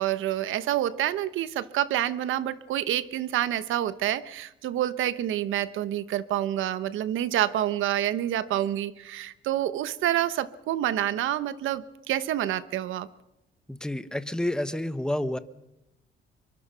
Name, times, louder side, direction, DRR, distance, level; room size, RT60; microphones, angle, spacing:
voice 1, 0.0-13.1, right 12 dB, 85° right, 15 dB, 1.1 m, -28 dB
voice 2, 13.8-15.4, left 1 dB, 5° left, 12 dB, 1.2 m, -29 dB
24.5 x 23.5 x 5.8 m, 0.90 s
cardioid pair, 90°, 20 cm